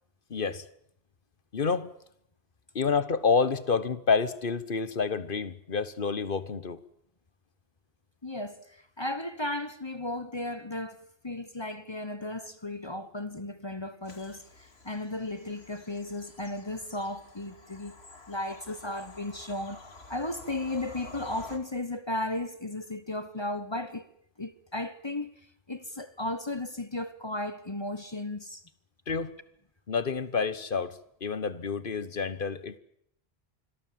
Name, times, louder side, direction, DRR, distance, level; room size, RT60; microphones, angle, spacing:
voice 1, 0.3-0.6 1.5-1.9 2.7-6.8 29.1-29.3 29.9-32.8, left 5 dB, 55° left, 1.3 m, -28 dB
voice 2, 8.2-18.0 18.3-19.8 20.1-24.1 24.4-25.3 25.7-28.6, left 2 dB, 25° left, 1.2 m, -35 dB
Bird vocalization bird call bird song / Train, 14.0-21.6, left 2 dB, 80° left, 2.7 m, -50 dB
26.5 x 22.0 x 7.6 m
omnidirectional pair, 1.1 m